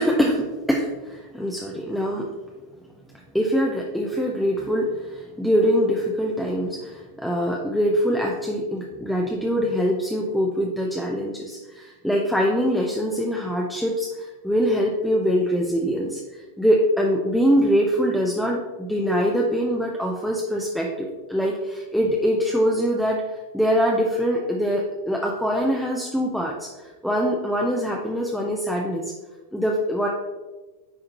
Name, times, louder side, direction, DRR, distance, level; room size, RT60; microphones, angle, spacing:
voice 1, 0.0-2.3 3.3-23.2 23.5-29.1 29.5-30.1, equal, ahead, -1 dB, 0.6 m, -23 dB
9.6 x 3.6 x 3.0 m, 1.2 s
figure-of-eight pair, 90°, 0 cm